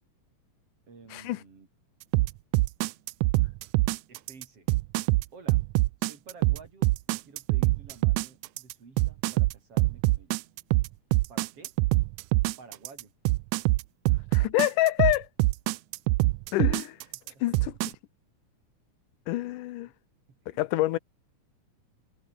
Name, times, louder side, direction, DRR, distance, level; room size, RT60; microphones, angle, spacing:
voice 1, 0.9-1.7 4.1-4.7 5.3-5.6 6.0-10.4 11.3-11.7 12.6-13.1 17.1-17.6 19.8-19.9 20.3-20.6, right 4 dB, 45° right, 4.9 m, -52 dB
sound 1, 2.1-17.9, right 21 dB, 80° right, 1.9 m, -24 dB
voice 2, 14.3-15.3 16.5-17.0 17.4-17.9 19.3-19.9 20.5-21.0, left 16 dB, 85° left, 2.4 m, -27 dB
omnidirectional pair, 3.6 m